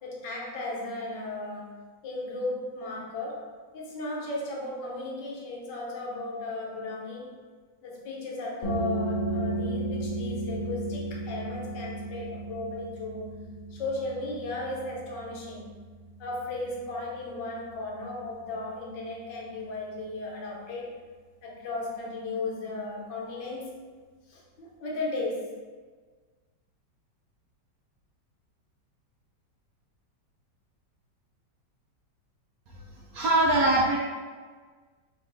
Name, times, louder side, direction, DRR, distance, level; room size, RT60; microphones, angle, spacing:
voice 1, 0.0-7.4 7.8-13.3 13.7-15.7 16.2-20.9 21.4-23.8 24.3-25.5, left 2 dB, 85° left, -3 dB, 1.6 m, -35 dB
sound 1, 8.6-20.0, right 2 dB, 60° left, 0.4 m, -35 dB
voice 2, 33.1-34.0, right 1 dB, 65° right, -2 dB, 0.9 m, -22 dB
6.8 x 2.9 x 2.7 m, 1.5 s
omnidirectional pair, 1.9 m